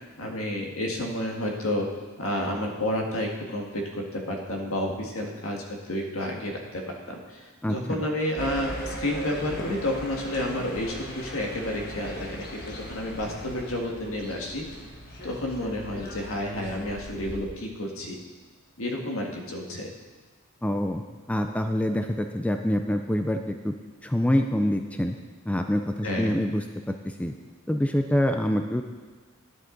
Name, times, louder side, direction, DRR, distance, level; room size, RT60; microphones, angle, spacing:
voice 1, 0.2-1.9 2.2-14.6 15.2-18.2 18.8-19.9 26.0-26.4, left 1 dB, 70° left, 0 dB, 1.8 m, -30 dB
voice 2, 7.6-8.1 20.6-21.0 21.3-23.7 24.0-25.1 25.5-27.3 27.7-28.8, left 1 dB, 5° left, 6 dB, 0.4 m, -26 dB
sound 1, 8.4-17.4, equal, 45° left, 1.6 m, -38 dB
11.0 x 10.0 x 3.9 m, 1.4 s
head